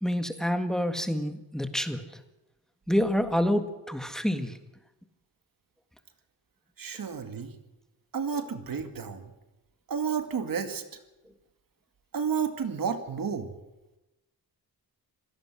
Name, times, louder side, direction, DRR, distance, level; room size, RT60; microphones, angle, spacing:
voice 1, 0.0-2.0 2.9-4.6, equal, ahead, 8 dB, 1.8 m, -27 dB
voice 2, 6.8-7.5 8.1-9.3 9.9-10.8 12.1-13.5, right 6 dB, 60° right, 8 dB, 2.2 m, -31 dB
26.0 x 17.5 x 6.3 m, 0.99 s
wide cardioid pair, 135°, 38 cm